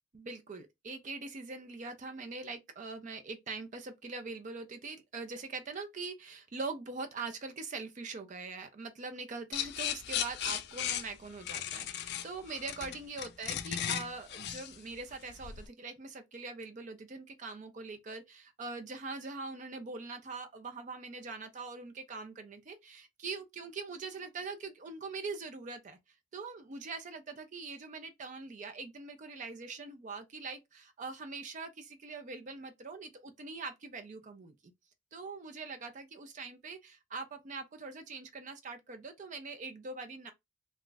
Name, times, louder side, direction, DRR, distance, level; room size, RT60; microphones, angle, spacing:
voice 1, 0.1-26.0 26.3-34.5 35.1-40.3, right 4 dB, 40° right, 0.4 m, -43 dB
sound 1, 9.5-15.7, left 10 dB, 60° left, 0.4 m, -36 dB
2.4 x 2.3 x 3.8 m
head